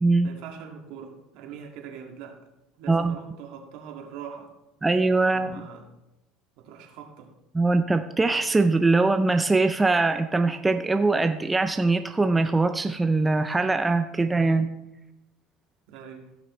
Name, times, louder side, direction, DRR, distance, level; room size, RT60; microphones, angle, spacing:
voice 1, 0.2-2.4 2.8-4.5 5.3-5.9 6.6-7.3 15.9-16.3, right 7 dB, 70° right, 2 dB, 1.9 m, -42 dB
voice 2, 4.8-5.6 7.5-14.7, right 3 dB, 15° right, 8 dB, 0.5 m, -22 dB
15.5 x 6.2 x 3.2 m, 0.92 s
supercardioid pair, 115°, 0 cm